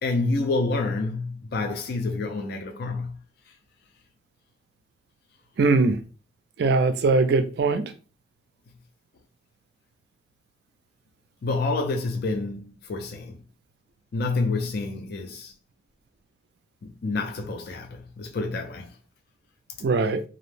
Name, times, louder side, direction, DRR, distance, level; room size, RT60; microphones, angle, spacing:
voice 1, 0.0-3.2 11.4-13.4 14.1-15.5 16.8-19.0, left 3 dB, 50° left, 0.3 m, -28 dB
voice 2, 5.6-6.0 6.6-7.9 19.8-20.2, right 3 dB, 55° right, 0.3 m, -21 dB
2.4 x 2.0 x 3.1 m
head